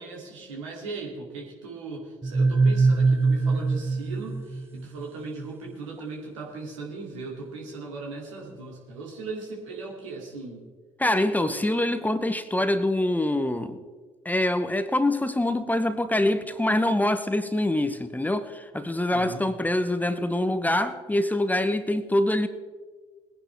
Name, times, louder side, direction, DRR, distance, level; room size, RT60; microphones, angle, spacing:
voice 1, 0.0-10.6 19.1-19.4, right 3 dB, 80° right, 2.6 m, -38 dB
sound 1, 2.2-5.1, right 3 dB, 15° right, 0.7 m, -22 dB
voice 2, 11.0-13.8 14.2-22.5, left 1 dB, 10° left, 0.9 m, -25 dB
20.5 x 10.0 x 3.4 m
figure-of-eight pair, 50°, 16 cm